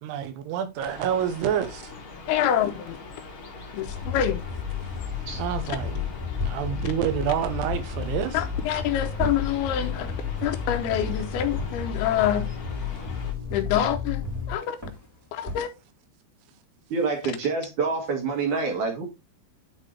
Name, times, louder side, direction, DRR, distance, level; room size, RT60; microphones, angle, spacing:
voice 1, 0.0-1.8 5.3-6.0 6.5-8.4, right 9 dB, 80° right, 2.9 m, -28 dB
sound 1, 0.8-13.3, left 3 dB, 60° left, 1.3 m, -42 dB
voice 2, 2.3-3.0 3.7-4.4 5.7-5.8 8.3-10.1 10.4-12.5 13.5-14.8 15.3-15.7, left 10 dB, 80° left, 2.6 m, -26 dB
sound 2, 3.9-14.6, left 7 dB, 15° left, 2.7 m, -32 dB
sound 3, 6.1-15.7, right 2 dB, 5° right, 2.2 m, -41 dB
voice 3, 16.9-19.0, right 4 dB, 55° right, 2.7 m, -27 dB
9.9 x 4.2 x 3.2 m
omnidirectional pair, 4.8 m